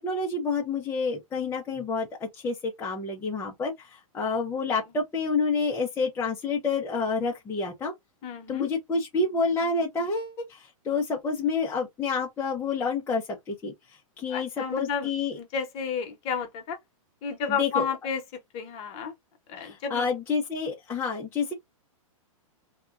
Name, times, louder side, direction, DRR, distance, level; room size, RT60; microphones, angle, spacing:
voice 1, 0.0-7.9 8.5-13.7 14.2-15.4 17.5-17.9 19.6-21.5, left 4 dB, 15° left, 0.6 m, -28 dB
voice 2, 8.2-8.7 14.3-16.8 17.2-18.2 18.5-19.1 19.5-20.1, left 6 dB, 35° left, 1.0 m, -31 dB
2.8 x 2.3 x 2.4 m
hypercardioid pair, 135°, 18 cm